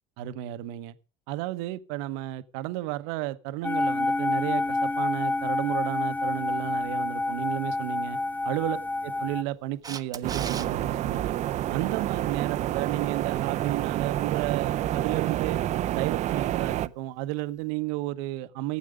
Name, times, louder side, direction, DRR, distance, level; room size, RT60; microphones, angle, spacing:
voice 1, 0.2-0.9 1.3-8.2 8.4-8.8 9.0-11.4 11.7-15.6 15.9-18.8, right 15 dB, 65° right, 12 dB, 1.0 m, -32 dB
sound 1, 3.6-9.4, left 2 dB, 10° left, 0.6 m, -28 dB
Camera, 9.8-10.7 17.4-17.5, right 6 dB, 25° right, 1.1 m, -36 dB
sound 2, 10.2-16.9, right 13 dB, 45° right, 0.7 m, -28 dB
15.5 x 8.5 x 5.1 m, 0.38 s
hypercardioid pair, 80°, 16 cm